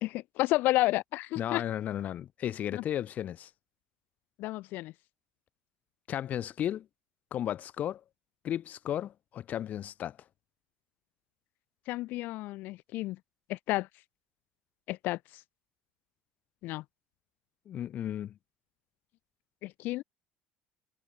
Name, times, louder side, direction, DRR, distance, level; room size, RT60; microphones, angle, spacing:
voice 1, 0.0-1.6 2.7-2.8 4.4-4.9 11.9-13.2 13.5-14.0 14.9-15.4 16.6-16.9 19.6-20.0, left 18 dB, 65° left, 2.2 m, -31 dB
voice 2, 1.4-3.5 6.1-6.9 7.3-8.0 8.4-10.2 17.7-18.3, left 11 dB, 50° left, 2.3 m, -34 dB
supercardioid pair, 90°, 3 cm